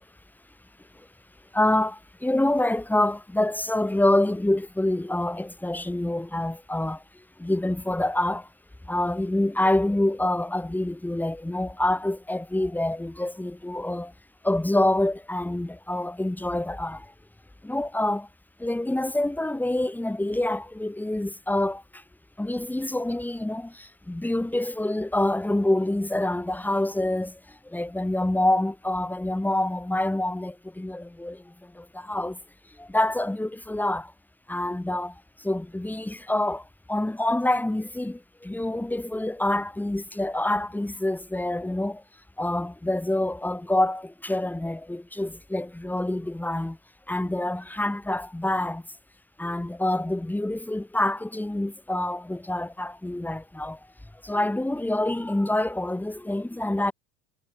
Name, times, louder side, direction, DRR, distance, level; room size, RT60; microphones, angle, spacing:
voice 1, 1.5-8.5 8.8-14.1 14.4-17.1 17.6-18.3 18.6-22.0 22.4-32.4 32.8-34.1 34.5-42.0 42.4-46.8 47.1-48.8 49.4-53.8 54.2-56.9, left 1 dB, 5° left, 7.0 m, -27 dB
supercardioid pair, 105°, 32 cm